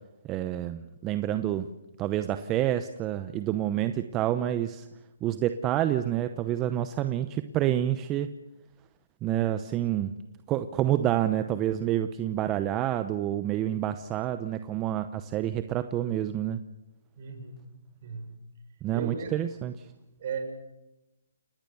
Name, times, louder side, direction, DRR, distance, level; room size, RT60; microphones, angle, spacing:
voice 1, 0.2-1.7 2.0-4.9 5.2-8.3 9.2-10.1 10.5-16.6 18.8-19.9, right 12 dB, 20° right, 10 dB, 0.8 m, -28 dB
voice 2, 17.2-17.7 18.0-18.5 18.9-19.4 20.2-20.4, right 5 dB, 45° right, 6 dB, 6.3 m, -36 dB
29.0 x 18.5 x 7.0 m, 0.94 s
hypercardioid pair, 160°, 0 cm